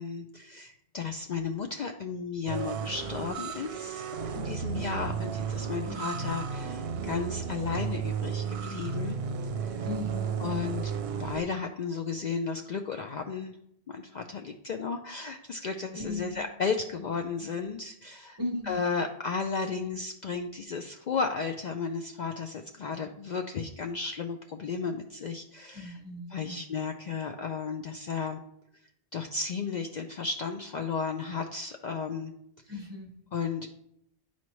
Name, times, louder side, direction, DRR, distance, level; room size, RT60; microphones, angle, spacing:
voice 1, 0.0-9.2 9.5-9.9 10.4-10.9 11.2-13.6 13.9-18.4 18.6-26.0 26.3-28.4 29.1-32.3 33.3-33.7, left 5 dB, 55° left, 4 dB, 0.5 m, -34 dB
sound 1, 2.5-11.4, right 6 dB, 75° right, 0.8 m, -33 dB
voice 2, 9.8-10.4 16.0-16.4 18.4-18.8 25.7-26.6 32.7-33.1, left 2 dB, 25° right, 2 dB, 0.9 m, -37 dB
10.5 x 4.2 x 3.0 m, 0.75 s
omnidirectional pair, 1.1 m